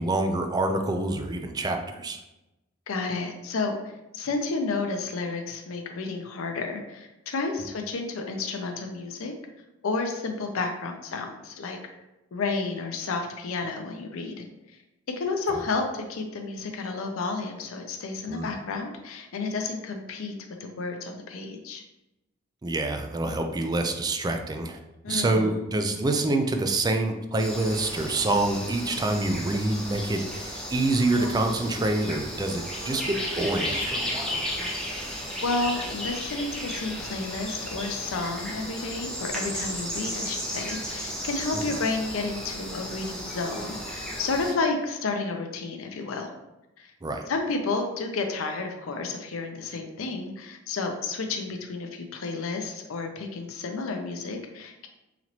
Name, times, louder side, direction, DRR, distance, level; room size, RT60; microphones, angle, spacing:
voice 1, 0.0-2.2 18.3-18.5 22.6-24.8 25.1-34.4 47.0-47.3, right 2 dB, 20° right, 5 dB, 0.3 m, -26 dB
voice 2, 2.9-3.8 4.1-9.3 9.8-11.8 12.3-14.8 15.2-20.4 20.6-21.8 25.0-25.6 35.4-46.3 46.8-46.9 47.3-54.9, left 3 dB, 85° left, 4 dB, 0.5 m, -31 dB
sound 1, 27.4-44.5, equal, 5° left, 0.8 m, -34 dB
4.0 x 2.9 x 2.9 m, 0.96 s
head